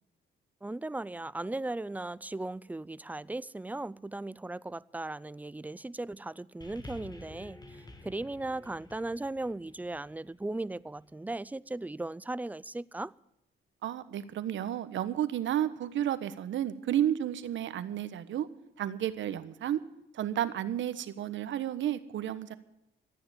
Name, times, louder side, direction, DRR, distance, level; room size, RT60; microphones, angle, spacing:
voice 1, 0.6-13.1, right 2 dB, 10° right, 0.5 m, -37 dB
sound 1, 6.6-11.2 12.0-12.1, left 2 dB, 20° left, 2.2 m, -51 dB
voice 2, 13.8-18.5 18.8-19.8 20.1-22.5, right 11 dB, 70° right, 1.3 m, -32 dB
14.0 x 9.7 x 9.2 m
cardioid pair, 90°, 20 cm